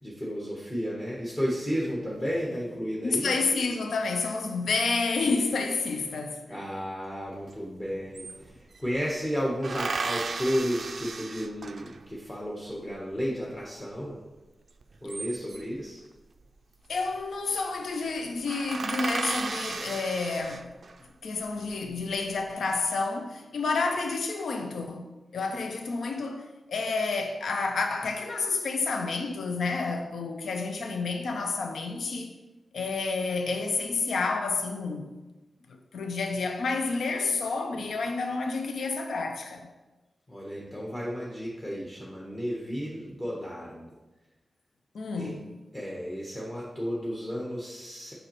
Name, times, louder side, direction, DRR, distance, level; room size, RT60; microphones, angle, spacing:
voice 1, 0.0-3.3 6.5-14.2 15.0-16.0 40.3-43.9 45.1-45.3 45.7-48.1, equal, 20° left, 1.0 m, -33 dB
voice 2, 3.0-6.4 16.9-20.7 21.2-25.1 25.3-32.3 32.7-35.1 35.7-39.6 44.9-45.4, left 4 dB, 90° left, 0.6 m, -29 dB
sound 1, 7.5-7.6 7.8-8.9 9.6-12.1 14.8-15.8 17.0-17.3 17.6-17.8 18.1-18.2 18.5-21.0 21.6-22.3, right 4 dB, 50° right, 0.3 m, -35 dB
7.7 x 5.2 x 3.0 m
wide cardioid pair, 145°, 0 cm